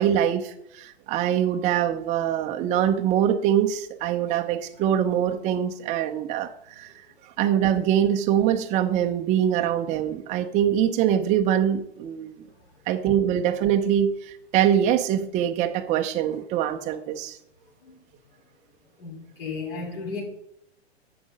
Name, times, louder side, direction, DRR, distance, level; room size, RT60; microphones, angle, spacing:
voice 1, 0.0-7.0 7.4-12.4 12.9-17.4, right 10 dB, 20° right, 0.6 m, -23 dB
voice 2, 19.0-20.2, left 4 dB, 50° left, 3.1 m, -34 dB
9.7 x 7.0 x 5.2 m
figure-of-eight pair, 105°, 33 cm